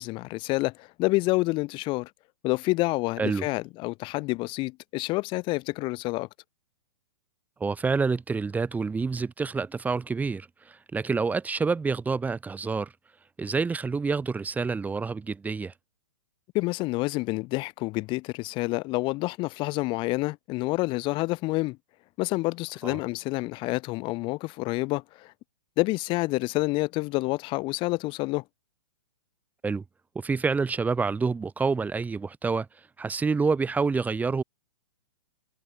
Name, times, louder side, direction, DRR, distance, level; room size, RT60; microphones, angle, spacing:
voice 1, 0.0-2.1 2.4-6.3 16.5-21.8 22.2-25.3 25.8-28.4, left 22 dB, 30° left, 0.8 m, -28 dB
voice 2, 7.6-12.9 13.4-15.7 22.8-23.0 29.6-29.8 30.1-32.7 33.0-34.4, right 4 dB, 10° right, 1.6 m, -27 dB
hypercardioid pair, 120°, 16 cm